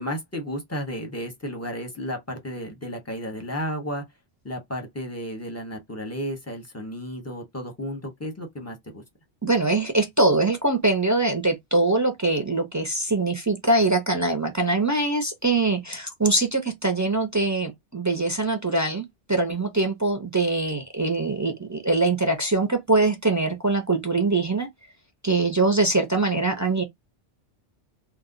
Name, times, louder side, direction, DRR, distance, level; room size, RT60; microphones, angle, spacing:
voice 1, 0.0-4.0 4.4-9.0, equal, 15° left, 0.7 m, -33 dB
voice 2, 9.4-24.7 25.2-26.8, right 2 dB, 25° right, 0.4 m, -23 dB
2.5 x 2.1 x 3.7 m
omnidirectional pair, 1.1 m